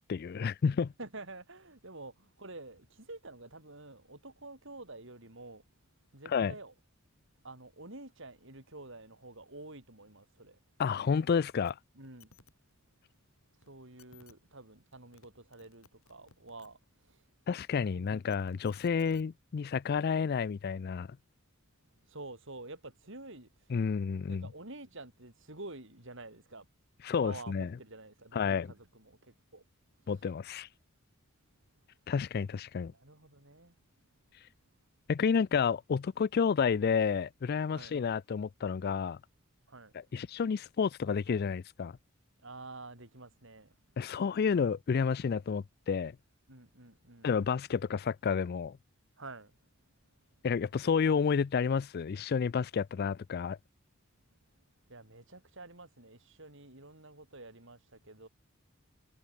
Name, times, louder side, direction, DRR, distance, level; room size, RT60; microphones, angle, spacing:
voice 1, 0.0-0.9 6.3-6.5 10.8-11.8 17.5-21.1 23.7-24.5 27.0-27.7 28.3-28.7 30.1-30.7 32.1-32.9 35.1-39.2 40.1-42.0 44.0-46.2 47.2-48.8 50.4-53.6, left 6 dB, 50° left, 0.4 m, -30 dB
voice 2, 1.0-5.6 6.1-6.7 7.4-10.6 11.9-12.3 13.6-17.2 17.9-18.2 22.1-23.8 24.3-26.7 27.2-29.6 30.1-30.2 32.9-33.8 37.7-38.0 39.7-39.9 42.4-43.8 46.5-47.3 49.2-49.6 54.9-58.3, right 2 dB, 65° right, 7.0 m, -49 dB
sound 1, 11.6-11.7 12.0-12.5 13.6-13.7 14.0-14.3 14.9-15.3 15.5-16.7 18.1-19.2 20.3-20.4, left 5 dB, 80° left, 2.8 m, -59 dB
head